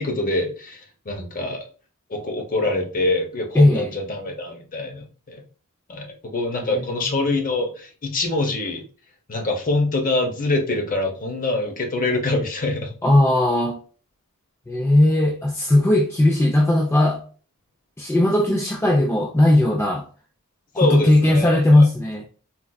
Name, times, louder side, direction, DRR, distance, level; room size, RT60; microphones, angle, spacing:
voice 1, 0.0-1.7 2.1-5.4 5.9-8.8 9.3-12.9 20.8-21.9, left 2 dB, 40° left, 0.7 m, -25 dB
voice 2, 3.5-3.9 6.7-6.9 13.0-13.8 14.7-17.2 18.0-20.0 20.8-22.2, left 1 dB, 10° left, 0.3 m, -17 dB
4.1 x 2.4 x 2.3 m
head